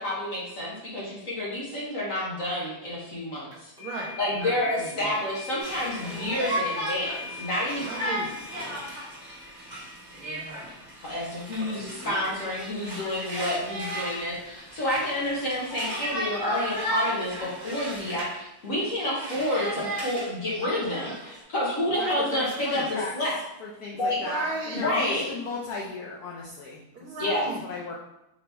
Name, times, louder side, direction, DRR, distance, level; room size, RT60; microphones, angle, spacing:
voice 1, 0.0-3.7 4.2-7.9 11.0-23.4 23.9-24.2 24.7-25.3 27.2-27.5, left 1 dB, 50° left, -6 dB, 1.1 m, -29 dB
sound 1, 3.5-12.4, left 4 dB, 5° right, 0.6 m, -43 dB
voice 2, 3.8-5.2 5.8-6.4 7.8-8.4 10.1-10.8 11.6-12.8 19.5-19.9 22.0-22.9 24.1-24.8 26.9-27.6, right 2 dB, 75° right, 0 dB, 1.5 m, -37 dB
Conversation, 5.6-18.4 18.8-21.4, equal, 30° right, 0.9 m, -35 dB
voice 3, 22.3-23.1 23.6-27.2 27.6-28.0, left 3 dB, 85° left, -2 dB, 0.8 m, -36 dB
5.1 x 2.9 x 3.4 m, 0.88 s
omnidirectional pair, 2.3 m